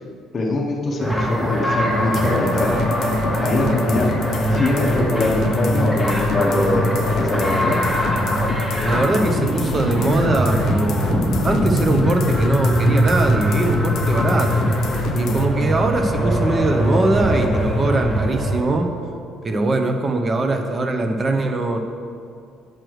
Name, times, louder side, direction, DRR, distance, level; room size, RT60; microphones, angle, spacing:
voice 1, 0.3-2.8 3.4-8.1, left 2 dB, 25° left, -3 dB, 0.7 m, -23 dB
sound 1, 1.0-18.6, equal, 5° right, 1.1 m, -21 dB
sound 2, 2.1-15.5, left 6 dB, 50° left, 0.3 m, -28 dB
voice 2, 8.8-14.7 15.1-18.9 19.4-21.8, right 2 dB, 25° right, 5 dB, 0.6 m, -21 dB
sound 3, 9.4-15.6, right 11 dB, 75° right, 0.6 m, -37 dB
8.9 x 3.1 x 6.2 m, 2.4 s
cardioid pair, 160°, 0 cm